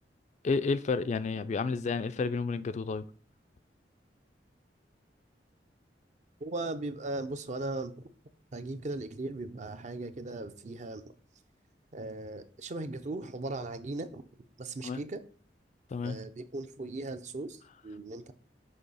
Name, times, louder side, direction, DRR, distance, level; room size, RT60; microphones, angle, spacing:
voice 1, 0.4-3.0 14.8-15.0 15.9-16.2, left 4 dB, 40° left, 0.3 m, -30 dB
voice 2, 6.4-8.1 8.5-11.1 11.9-14.2 14.6-15.2 16.0-18.3, right 2 dB, 40° right, 0.5 m, -38 dB
6.5 x 2.8 x 5.4 m
head